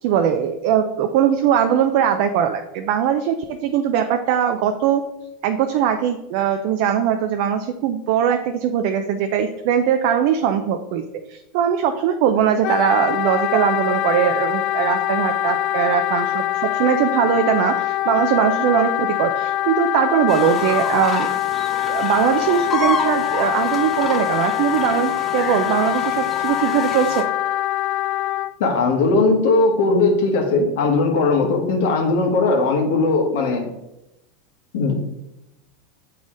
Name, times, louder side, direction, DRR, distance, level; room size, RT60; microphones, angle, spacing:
voice 1, 0.0-5.0 5.4-11.0 11.3-21.3 21.9-27.3, right 8 dB, 60° right, 6 dB, 0.5 m, -20 dB
Wind instrument woodwind instrument, 12.6-28.5, left 14 dB, 55° left, 0.3 m, -23 dB
sound 1, 20.3-27.2, left 3 dB, 20° left, 1.7 m, -30 dB
voice 2, 28.6-33.7 34.7-35.0, left 3 dB, 70° left, 2 dB, 1.4 m, -18 dB
6.9 x 4.1 x 3.8 m, 0.88 s
hypercardioid pair, 95°, 0 cm